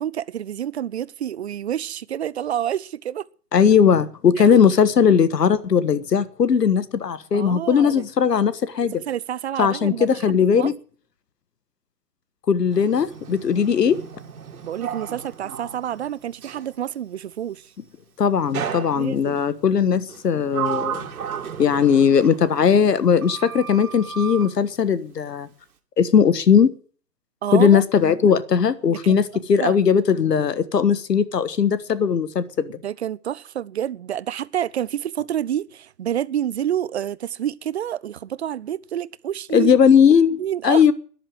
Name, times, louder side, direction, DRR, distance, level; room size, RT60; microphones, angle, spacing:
voice 1, 0.0-3.3 4.4-4.6 7.3-8.1 9.1-10.7 14.6-17.7 19.0-19.4 27.4-27.8 29.0-29.2 29.6-29.8 32.8-39.7 40.4-40.9, right 10 dB, 40° right, 0.6 m, -28 dB
voice 2, 3.5-8.9 9.6-10.7 12.5-14.0 18.2-21.1 21.6-25.5 26.0-26.7 27.5-32.8 39.5-40.9, left 7 dB, 75° left, 1.5 m, -18 dB
Sliding door, 12.7-16.7 18.5-19.4 20.1-23.0 23.2-24.5, right 8 dB, 60° right, 2.6 m, -34 dB
13.0 x 10.5 x 7.7 m
hypercardioid pair, 145°, 49 cm